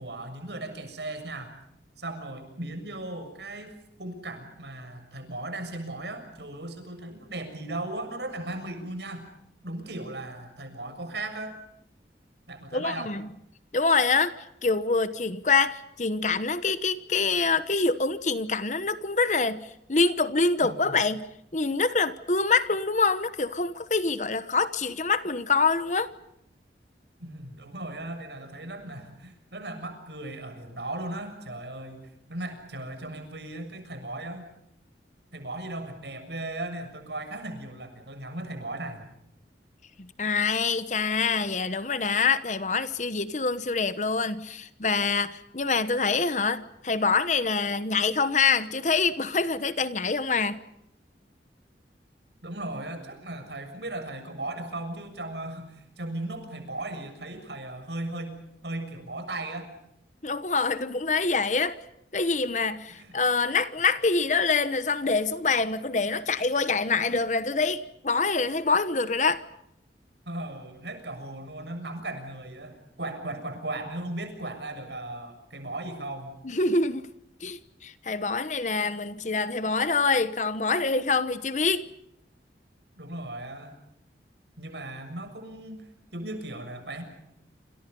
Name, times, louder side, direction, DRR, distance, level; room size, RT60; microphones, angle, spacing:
voice 1, 0.0-1.5 2.0-9.3 9.6-11.6 12.5-13.1 20.6-21.0 27.2-34.5 35.3-39.0 52.4-59.7 62.9-63.2 70.2-76.4 83.0-83.8 84.6-87.0, right 2 dB, 75° right, 6.9 m, -37 dB
voice 2, 12.7-13.3 13.7-14.3 14.6-21.3 21.5-26.1 40.0-50.6 60.2-61.8 62.1-69.4 76.4-77.1 77.4-81.9, left 4 dB, 40° left, 1.1 m, -25 dB
28.0 x 27.5 x 5.5 m
head